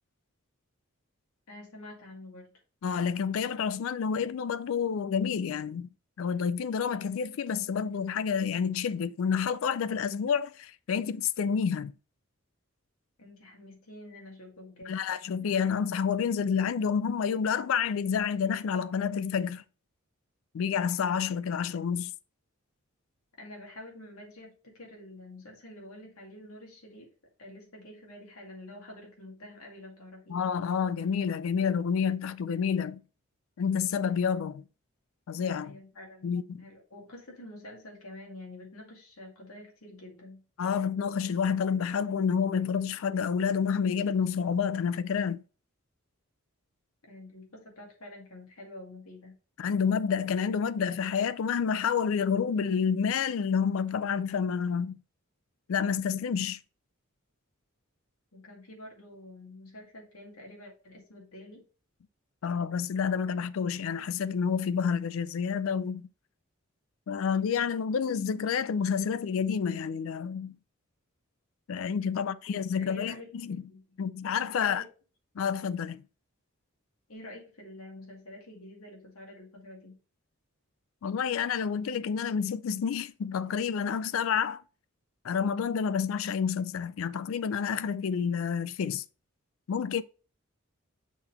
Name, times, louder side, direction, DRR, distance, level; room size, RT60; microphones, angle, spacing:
voice 1, 1.5-2.5 13.2-15.3 23.4-27.1 27.4-30.4 35.6-40.4 47.0-49.3 58.3-61.6 72.2-73.3 73.7-73.8 74.6-74.9 77.1-80.0, left 1 dB, 85° left, 2.4 m, -48 dB
voice 2, 2.8-5.9 6.2-11.9 14.9-19.6 20.5-22.1 30.3-33.0 33.6-34.6 35.3-35.8 36.2-36.6 40.6-45.4 49.6-55.0 55.7-56.6 62.4-66.1 67.1-70.6 71.7-73.1 73.4-73.6 74.0-74.8 75.4-76.0 81.0-84.6 85.2-89.0 89.7-90.0, left 6 dB, 65° left, 0.3 m, -29 dB
6.2 x 3.9 x 4.2 m
head